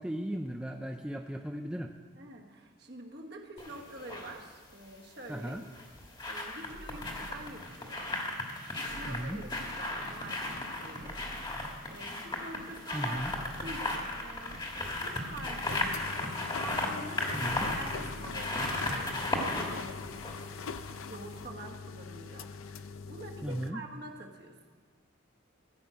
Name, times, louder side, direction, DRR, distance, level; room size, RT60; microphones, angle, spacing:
voice 1, 0.0-1.9 5.3-5.6 9.1-9.4 12.9-13.3 17.3-17.7 23.4-23.8, right 1 dB, 5° right, 3 dB, 0.4 m, -36 dB
voice 2, 2.2-5.6 6.2-11.3 11.8-13.2 13.6-15.9 16.5-20.0 21.0-24.8, right 2 dB, 50° right, 1 dB, 1.3 m, -47 dB
sound 1, 3.6-4.3 5.6-21.1 21.4-21.5, left 2 dB, 20° left, 1.3 m, -36 dB
sound 2, 6.7-8.0 8.8-10.5 11.0-12.4 13.1-14.7 15.3-16.7 17.4-19.0, right 2 dB, 70° right, 0.8 m, -50 dB
sound 3, 15.6-23.7, left 5 dB, 85° left, 0.5 m, -42 dB
15.0 x 5.4 x 7.5 m, 1.5 s
head